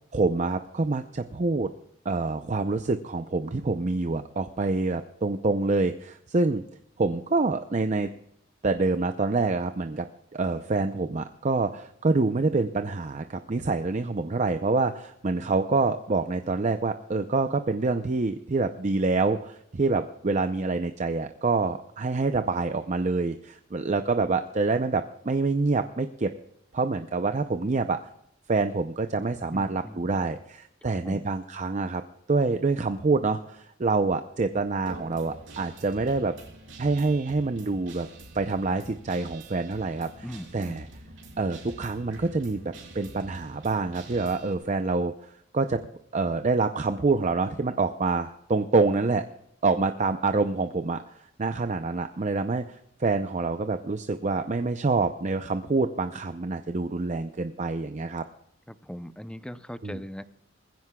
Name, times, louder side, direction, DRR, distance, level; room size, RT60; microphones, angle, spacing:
voice 1, 0.1-1.7 2.0-6.6 7.0-8.1 8.6-10.1 10.3-26.3 26.7-28.0 28.5-32.0 32.3-36.3 36.8-38.1 38.3-40.1 40.5-40.8 41.4-45.8 46.1-49.2 49.6-51.0 51.4-58.2 59.8-60.0, right 3 dB, 40° right, 8 dB, 0.6 m, -26 dB
voice 2, 29.5-30.0 30.8-31.3 40.2-40.9 58.7-60.2, equal, 5° left, 12 dB, 0.6 m, -39 dB
Guitar, 34.9-44.5, right 2 dB, 85° right, 3.3 m, -46 dB
20.5 x 15.5 x 2.3 m, 0.77 s
head